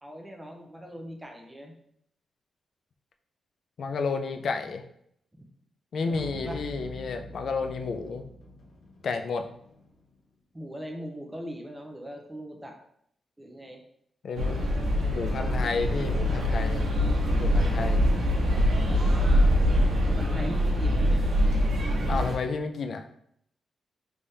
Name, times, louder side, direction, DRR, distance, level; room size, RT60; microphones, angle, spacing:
voice 1, 0.0-1.7 5.3-5.4 6.0-6.6 10.5-12.8 13.4-13.8 20.1-21.2, equal, 10° right, 2 dB, 0.5 m, -40 dB
voice 2, 3.8-4.8 5.9-8.2 9.0-9.4 14.2-16.9 17.4-18.0 22.1-23.1, left 4 dB, 55° left, 6 dB, 0.3 m, -31 dB
sound 1, 6.1-10.1, equal, 80° left, 0.7 m, -44 dB
sound 2, 14.4-22.4, equal, 85° right, 1.0 m, -24 dB
3.4 x 3.3 x 2.7 m, 0.70 s
wide cardioid pair, 175°, 0 cm